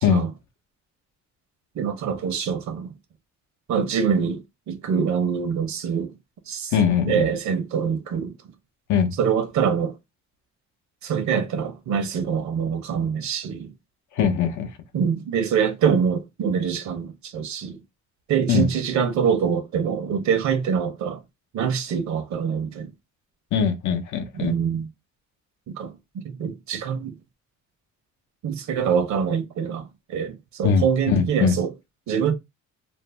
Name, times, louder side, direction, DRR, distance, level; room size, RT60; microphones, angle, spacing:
voice 1, 1.8-2.9 3.7-6.1 6.5-6.7 7.1-8.3 9.2-10.0 11.0-13.7 14.9-17.8 18.3-21.2 21.5-22.9 24.4-24.9 25.7-27.1 28.4-31.7 32.1-32.3, right 7 dB, 70° right, 0.8 m, -24 dB
voice 2, 6.7-7.3 8.9-9.1 14.2-14.7 18.5-18.7 23.5-24.5 30.6-31.6, left 7 dB, 75° left, 0.7 m, -21 dB
2.6 x 2.0 x 3.2 m
cardioid pair, 90°, 30 cm